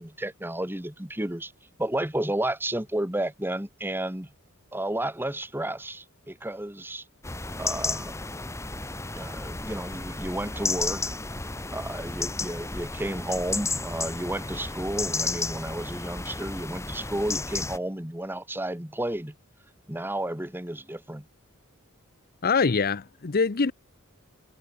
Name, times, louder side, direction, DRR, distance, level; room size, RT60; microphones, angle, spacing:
voice 1, 0.0-1.5 1.8-4.3 4.7-7.0 7.6-8.1 9.1-11.0 11.7-19.4 19.9-21.3, right 1 dB, 10° right, 1.9 m, -32 dB
sound 1, 7.2-17.8, left 3 dB, 15° left, 1.4 m, -32 dB
voice 2, 22.4-23.7, left 4 dB, 45° left, 0.7 m, -24 dB
head